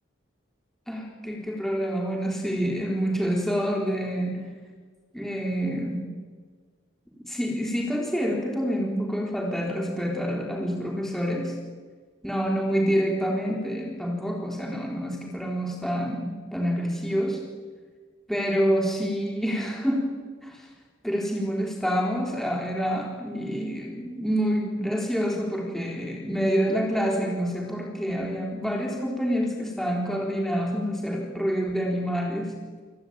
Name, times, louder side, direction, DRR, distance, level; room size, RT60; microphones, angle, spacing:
voice 1, 0.9-4.5 5.1-6.1 7.3-11.6 12.2-17.4 18.3-20.2 20.4-20.7 21.0-32.6, equal, ahead, -1 dB, 3.9 m, -27 dB
28.5 x 23.0 x 9.1 m, 1.5 s
head